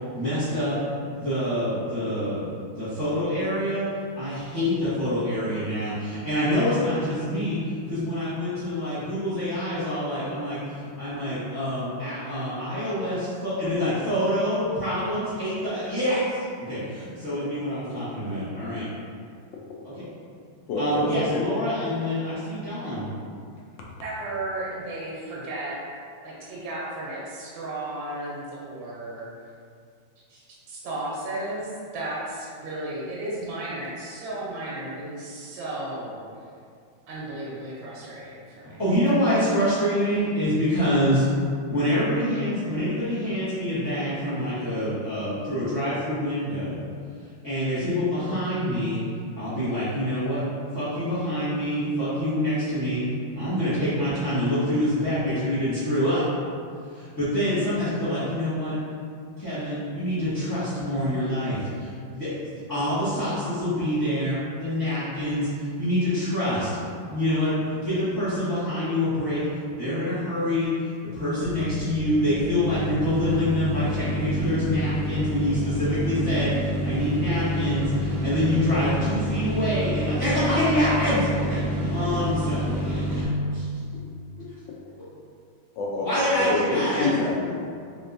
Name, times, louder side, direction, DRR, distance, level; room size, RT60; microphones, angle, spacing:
voice 1, 0.1-0.7 1.1-2.5 2.8-3.8 4.2-7.6 7.9-16.4 16.7-18.9 19.8-19.9 20.8-23.0 38.8-41.2 41.7-46.8 47.4-49.0 49.4-50.4 50.7-53.0 53.3-56.2 56.9-58.8 59.4-66.7 67.1-69.5 69.8-70.7 71.1-83.0 86.0-87.1, left 1 dB, 25° left, -15 dB, 0.4 m, -26 dB
voice 2, 20.7-21.4 85.8-87.6, left 3 dB, 70° left, -3 dB, 1.2 m, -27 dB
voice 3, 24.0-25.8 26.2-29.3 30.3-30.4 30.7-36.2 37.1-38.8, right 1 dB, 75° right, -6 dB, 1.4 m, -34 dB
sound 1, 71.4-83.2, right 1 dB, 55° right, 0.8 m, -28 dB
3.5 x 2.9 x 2.5 m, 2.3 s
omnidirectional pair, 2.2 m